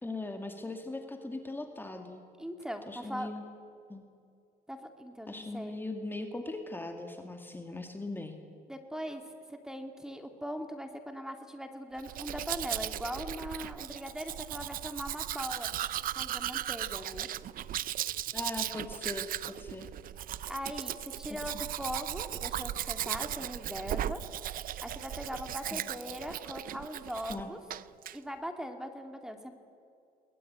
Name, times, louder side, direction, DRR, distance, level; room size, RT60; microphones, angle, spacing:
voice 1, 0.0-2.2 2.9-3.4 3.9-4.1 5.3-8.4 18.3-19.3 19.6-19.9 21.5-21.6 25.7-25.8 27.3-27.5, left 2 dB, 10° left, 4 dB, 2.1 m, -39 dB
voice 2, 2.4-3.3 4.7-5.7 8.7-9.2 9.5-17.3 20.5-24.2 24.8-27.6 28.1-29.5, equal, 5° right, 6 dB, 2.4 m, -40 dB
Domestic sounds home sounds, 12.0-27.4 27.7-28.2, right 12 dB, 55° right, 0.6 m, -37 dB
22.5 x 20.5 x 9.4 m, 2.5 s
cardioid pair, 110°, 17 cm